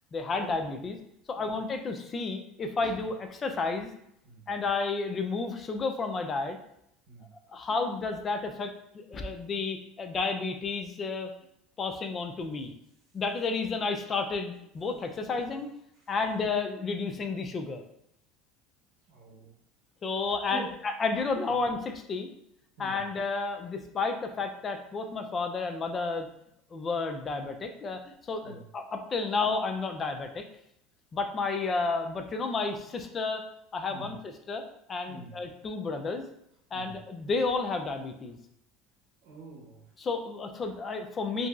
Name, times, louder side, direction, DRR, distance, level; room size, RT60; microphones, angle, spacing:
voice 1, 0.1-1.0 1.3-3.9 4.5-6.6 7.5-11.3 11.8-12.7 13.1-15.7 16.1-17.8 20.0-22.3 22.8-26.3 26.7-28.0 28.3-30.4 31.1-33.5 33.7-34.6 34.9-36.3 36.7-38.4 40.0-41.5, left 4 dB, 25° left, 6 dB, 0.3 m, -31 dB
voice 2, 19.1-19.5 20.5-20.7 22.8-23.0 28.4-28.6 33.9-34.1 35.1-35.3 36.7-36.9 39.2-39.8, right 2 dB, 70° right, -4 dB, 0.8 m, -44 dB
2.7 x 2.6 x 2.4 m, 0.77 s
supercardioid pair, 130°, 0 cm